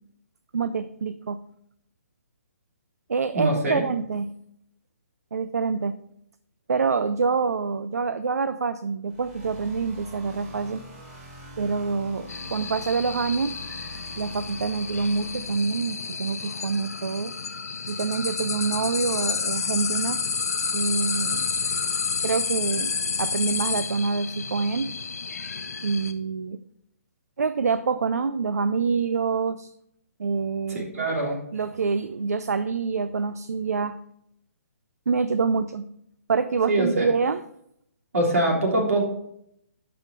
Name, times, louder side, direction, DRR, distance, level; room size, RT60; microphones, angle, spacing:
voice 1, 0.5-1.4 3.1-4.3 5.3-6.0 6.7-10.8 11.6-13.6 14.2-17.3 17.9-20.2 20.7-21.5 22.2-22.9 23.2-24.9 25.8-26.6 27.4-29.7 30.2-31.1 31.5-34.0 35.1-35.9 36.3-37.4, right 5 dB, 85° right, 12 dB, 0.5 m, -26 dB
voice 2, 3.3-3.8 30.7-31.4 36.7-37.1 38.1-39.0, right 1 dB, 70° right, 0 dB, 3.3 m, -23 dB
sound 1, 9.1-15.5, right 1 dB, 35° right, 3.8 m, -44 dB
sound 2, 12.3-26.1, left 5 dB, 80° left, 0.8 m, -30 dB
11.5 x 5.7 x 4.0 m, 0.73 s
hypercardioid pair, 150°, 8 cm